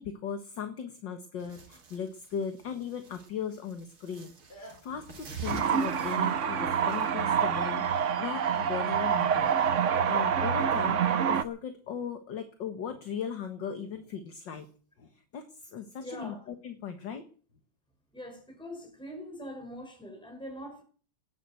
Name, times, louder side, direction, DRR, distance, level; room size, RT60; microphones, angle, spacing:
voice 1, 0.0-4.3 4.8-9.5 10.1-14.7 15.0-17.2, left 7 dB, 60° left, 2.1 m, -38 dB
sound 1, 1.4-7.6, right 4 dB, 80° right, 3.5 m, -47 dB
sound 2, 2.6-3.3 4.2-4.3 4.5-5.2 5.9-6.9 8.2-8.5 9.2-9.3, right 1 dB, 80° left, 7.1 m, -53 dB
sound 3, 5.4-11.4, right 7 dB, 50° right, 0.9 m, -27 dB
voice 2, 16.0-16.4 18.1-20.8, equal, ahead, 4.9 m, -43 dB
18.0 x 10.0 x 7.9 m
omnidirectional pair, 2.3 m